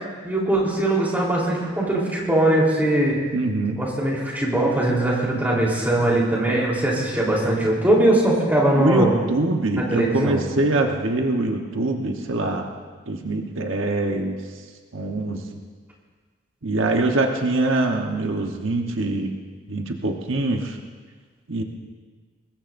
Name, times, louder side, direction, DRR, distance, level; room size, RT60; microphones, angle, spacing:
voice 1, 0.2-3.2 3.8-9.1 9.8-10.4, right 1 dB, 10° right, -4 dB, 3.8 m, -21 dB
voice 2, 3.3-3.8 8.7-12.7 13.1-14.4 14.9-15.6 16.6-19.3 19.7-20.8 21.5-21.6, right 2 dB, 80° right, 3 dB, 1.2 m, -24 dB
24.0 x 20.0 x 2.7 m, 1.5 s
head